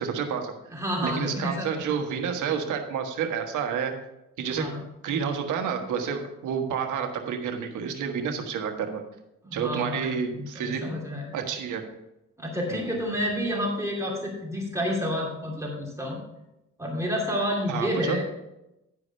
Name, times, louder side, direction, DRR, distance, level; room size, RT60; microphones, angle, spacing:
voice 1, 0.0-0.5 1.0-3.9 4.4-4.7 5.0-9.0 9.5-10.9 11.3-11.8 12.7-13.0 17.7-18.2, right 7 dB, 80° right, 4 dB, 1.4 m, -29 dB
voice 2, 0.7-1.8 4.4-4.8 9.4-11.3 12.4-16.2 16.8-18.3, equal, 10° right, -2 dB, 2.7 m, -30 dB
10.5 x 4.9 x 5.5 m, 0.90 s
cardioid pair, 90°, 30 cm